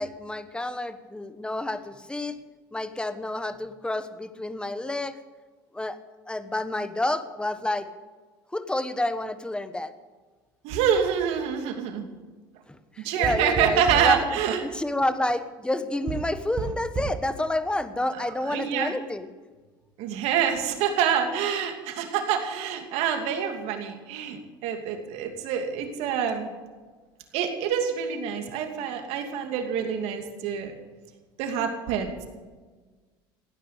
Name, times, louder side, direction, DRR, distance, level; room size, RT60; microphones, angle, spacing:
voice 1, 0.0-2.4 2.7-5.2 5.7-6.0 6.3-7.9 8.5-9.9 12.7-19.3, left 1 dB, 10° left, 11 dB, 1.4 m, -29 dB
voice 2, 10.6-12.1 13.0-14.6 18.2-18.9 20.0-26.5 27.3-30.7 31.4-32.1, right 8 dB, 70° right, 5 dB, 2.7 m, -26 dB
sound 1, 13.2-14.2 16.1-17.3, right 7 dB, 40° right, 1.5 m, -32 dB
16.0 x 9.9 x 8.3 m, 1.4 s
supercardioid pair, 90°, 11 cm